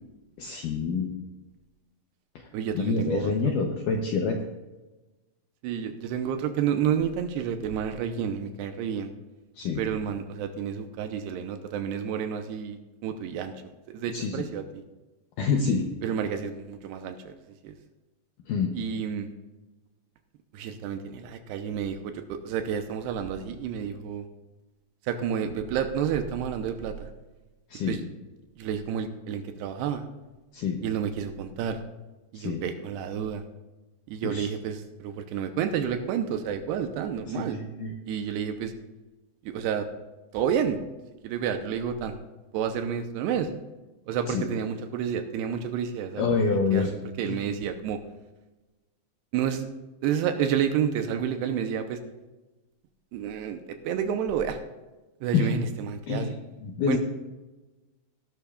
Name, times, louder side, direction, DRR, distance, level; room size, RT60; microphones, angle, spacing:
voice 1, 0.4-1.1 2.7-4.4 9.6-9.8 14.1-14.5 15.4-15.9 18.5-18.7 27.7-28.0 30.5-30.8 32.3-32.6 34.2-34.5 37.3-37.9 44.3-44.4 46.2-46.9 47.2-47.4 55.3-55.5 56.1-56.3 56.6-57.0, left 5 dB, 80° left, 2 dB, 1.9 m, -27 dB
voice 2, 2.5-3.3 5.6-9.1 9.8-13.6 13.9-14.8 16.0-17.4 17.6-17.7 18.7-19.3 20.5-24.3 25.0-27.1 27.9-28.0 28.6-30.0 30.8-31.8 32.3-33.4 34.1-37.6 38.1-38.7 39.4-39.9 40.3-40.8 41.2-42.2 42.5-43.5 44.1-46.2 46.7-46.9 47.2-48.0 49.3-49.7 50.0-52.0 53.1-54.6 55.2-56.3 56.9-57.0, right 8 dB, 80° right, 7 dB, 2.7 m, -30 dB
18.0 x 11.5 x 2.4 m, 1.1 s
omnidirectional pair, 5.0 m